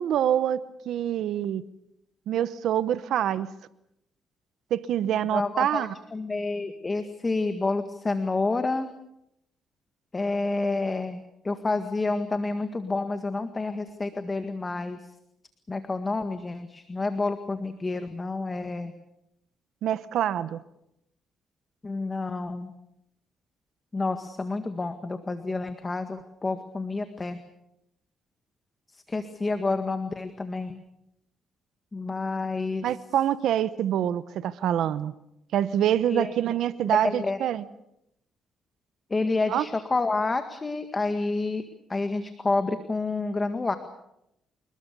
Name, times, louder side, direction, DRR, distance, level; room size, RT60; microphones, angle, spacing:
voice 1, 0.0-1.6 2.3-3.5 4.7-5.9 19.8-20.6 32.8-35.1 35.5-37.6 39.5-39.6, right 10 dB, 75° right, 15 dB, 1.0 m, -26 dB
voice 2, 5.3-8.9 10.1-15.1 15.7-18.9 21.8-22.7 23.9-27.4 28.9-30.8 31.9-32.9 36.1-36.3 36.8-37.4 39.1-41.6 41.9-43.8, left 3 dB, 25° left, 8 dB, 1.8 m, -29 dB
28.0 x 20.5 x 6.9 m, 0.82 s
cardioid pair, 90°, 0 cm